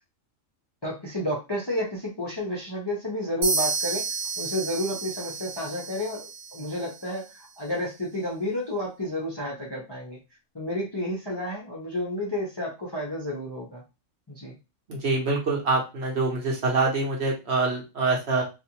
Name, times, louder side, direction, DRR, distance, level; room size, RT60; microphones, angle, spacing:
voice 1, 0.8-4.0 4.4-10.2 10.5-13.8 14.3-14.5, left 1 dB, 30° left, -3 dB, 0.5 m, -31 dB
sound 1, 3.4-7.2, right 3 dB, 80° right, 1.1 m, -31 dB
voice 2, 14.9-18.4, right 3 dB, 55° right, -2 dB, 1.0 m, -25 dB
2.5 x 2.5 x 2.8 m, 0.27 s
omnidirectional pair, 1.5 m